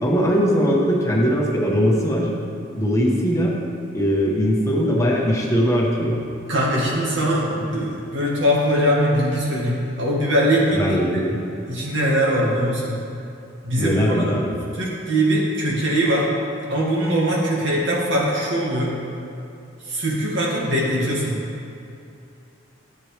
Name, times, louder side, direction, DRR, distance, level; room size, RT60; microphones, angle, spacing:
voice 1, 0.0-2.3 2.8-3.5 3.9-6.2 10.7-11.4 13.8-14.6, equal, 15° left, -3 dB, 1.1 m, -20 dB
voice 2, 6.5-11.0 11.7-12.9 13.6-13.9 14.3-14.4 14.7-16.3 16.7-18.9 19.9-21.3, equal, 70° right, -4 dB, 2.0 m, -21 dB
11.0 x 7.7 x 3.4 m, 2.7 s
head